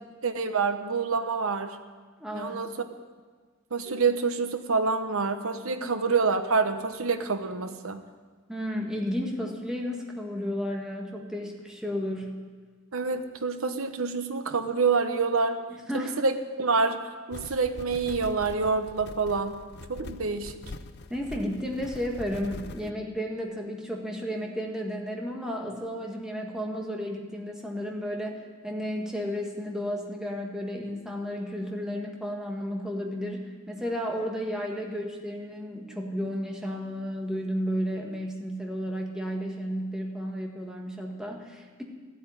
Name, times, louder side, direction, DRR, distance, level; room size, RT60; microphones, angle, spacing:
voice 1, 0.2-1.8 2.3-2.9 3.7-8.0 12.9-15.6 15.9-19.6 19.9-20.5, right 4 dB, 85° right, 8 dB, 1.1 m, -27 dB
voice 2, 2.2-2.6 5.8-5.9 8.5-12.3 15.7-16.2 21.1-41.8, equal, 5° right, 0 dB, 1.8 m, -33 dB
sound 1, 17.3-22.9, left 3 dB, 50° left, 0.6 m, -43 dB
14.0 x 8.4 x 10.0 m, 1.5 s
head